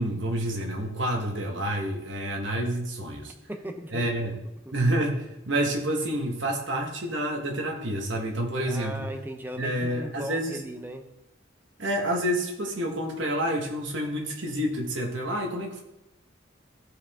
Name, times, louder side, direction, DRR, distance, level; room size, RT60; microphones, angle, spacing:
voice 1, 0.0-3.3 3.9-4.4 4.7-9.1 9.6-10.6 11.8-15.8, right 1 dB, 70° right, 2 dB, 1.6 m, -28 dB
voice 2, 3.5-4.0 4.6-4.8 8.7-11.1, right 1 dB, 10° right, 5 dB, 0.8 m, -37 dB
14.0 x 5.0 x 3.7 m, 0.95 s
head